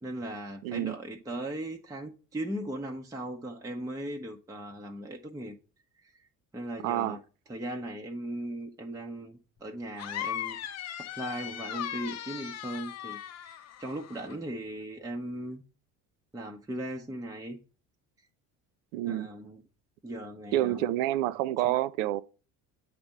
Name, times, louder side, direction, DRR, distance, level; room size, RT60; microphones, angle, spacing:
voice 1, 0.0-5.6 6.0-6.2 6.5-7.2 7.5-10.6 11.0-15.6 16.3-17.6 19.1-19.6 20.0-20.9 21.6-21.8, right 1 dB, 5° right, 0.7 m, -38 dB
voice 2, 0.6-0.9 6.8-7.2 18.9-19.3 20.5-22.2, right 14 dB, 60° right, 0.5 m, -28 dB
sound 1, 10.0-14.4, left 11 dB, 35° left, 0.6 m, -38 dB
8.6 x 3.4 x 5.3 m
figure-of-eight pair, 55°, 46 cm